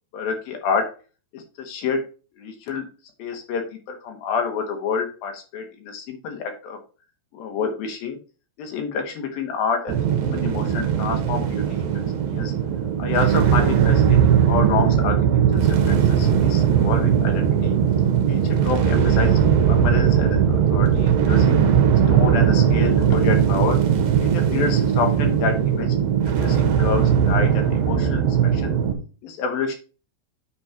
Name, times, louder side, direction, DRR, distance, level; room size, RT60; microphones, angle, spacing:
voice 1, 0.1-0.9 1.3-2.0 2.4-2.9 3.2-6.8 7.3-8.2 8.6-11.9 12.3-12.5 13.0-15.2 15.5-17.7 18.3-20.4 20.7-21.6 22.1-23.8 24.2-26.0 26.4-28.8 29.2-29.8, left 5 dB, 65° left, 4 dB, 3.1 m, -28 dB
sound 1, 9.9-28.9, right 8 dB, 70° right, 2.7 m, -19 dB
9.3 x 4.4 x 4.4 m, 0.35 s
omnidirectional pair, 4.8 m